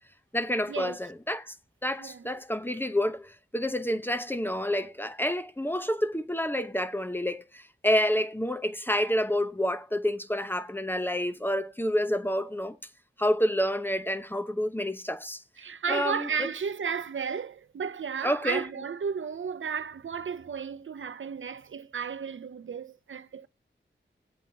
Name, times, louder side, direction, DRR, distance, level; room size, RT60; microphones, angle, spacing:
voice 1, 0.3-1.5 1.8-12.8 13.2-15.4 15.9-16.5 18.2-18.6, equal, 10° left, 0.9 m, -28 dB
voice 2, 2.0-2.3 15.6-23.5, right 6 dB, 80° right, 0.5 m, -33 dB
19.0 x 8.2 x 2.8 m
wide cardioid pair, 60°, 20 cm